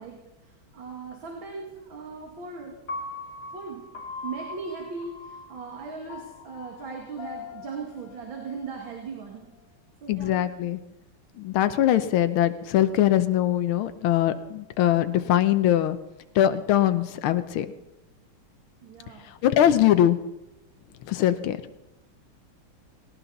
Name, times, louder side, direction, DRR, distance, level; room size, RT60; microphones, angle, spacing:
voice 1, 0.0-2.8 3.5-3.8 4.2-9.5 10.0-10.4 18.8-19.3, right 4 dB, 70° right, 0 dB, 2.8 m, -38 dB
Piano, 2.9-9.1, left 3 dB, 45° left, 2.2 m, -41 dB
voice 2, 10.1-10.8 11.4-16.0 16.3-17.7 19.3-20.2 21.1-21.6, left 12 dB, 90° left, 10 dB, 1.6 m, -22 dB
19.0 x 18.0 x 4.1 m, 0.95 s
omnidirectional pair, 2.2 m